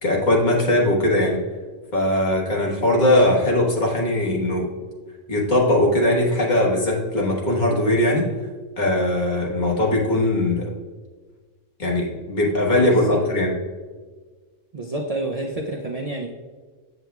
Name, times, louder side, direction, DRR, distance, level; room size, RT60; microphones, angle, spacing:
voice 1, 0.0-1.4 1.9-4.7 5.3-8.3 8.8-10.7 11.8-13.5, left 1 dB, 40° left, -3 dB, 1.4 m, -20 dB
voice 2, 12.7-13.2 14.7-16.3, right 2 dB, 50° right, 0 dB, 0.4 m, -29 dB
7.6 x 7.6 x 2.3 m, 1.4 s
omnidirectional pair, 1.3 m